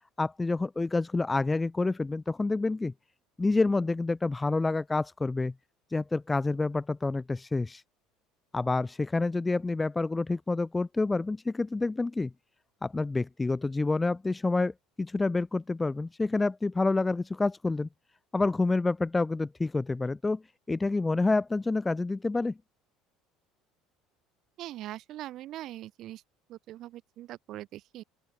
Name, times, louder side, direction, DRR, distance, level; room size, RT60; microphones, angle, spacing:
voice 1, 0.2-2.9 3.4-5.5 5.9-7.8 8.5-12.3 12.8-17.9 18.3-20.4 20.7-22.6, left 3 dB, 15° left, 1.3 m, -28 dB
voice 2, 24.6-26.2 26.5-28.0, right 14 dB, 60° right, 5.2 m, -42 dB
open air
supercardioid pair, 90°, 0 cm